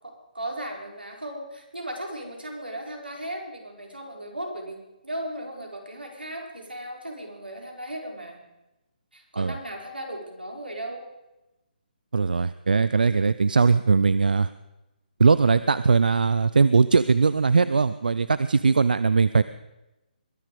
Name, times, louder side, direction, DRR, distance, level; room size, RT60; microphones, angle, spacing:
voice 1, 0.0-8.4 9.1-11.1, right 1 dB, 90° right, 0 dB, 4.5 m, -36 dB
voice 2, 12.1-14.5 15.2-19.4, right 4 dB, 65° right, 15 dB, 0.5 m, -20 dB
21.5 x 10.5 x 5.3 m, 0.99 s
figure-of-eight pair, 145°, 5 cm